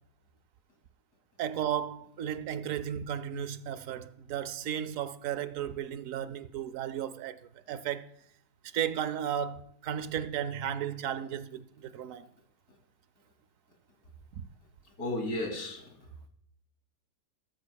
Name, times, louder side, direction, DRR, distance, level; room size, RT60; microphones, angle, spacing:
voice 1, 1.4-8.1 8.7-12.3, right 9 dB, 65° right, 0.9 m, -34 dB
voice 2, 14.8-16.3, left 1 dB, 60° left, 3.2 m, -35 dB
13.5 x 12.0 x 2.3 m
omnidirectional pair, 1.8 m